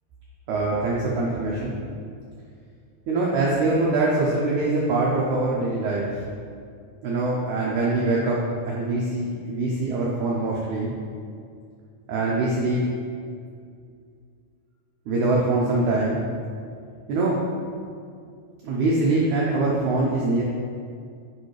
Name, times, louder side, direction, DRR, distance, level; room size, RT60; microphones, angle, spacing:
voice 1, 0.5-1.8 3.1-6.2 7.0-10.9 12.1-12.8 15.1-16.2 17.1-17.4 18.6-20.4, right 2 dB, 90° right, -4 dB, 1.6 m, -23 dB
6.7 x 4.9 x 3.2 m, 2.3 s
omnidirectional pair, 4.2 m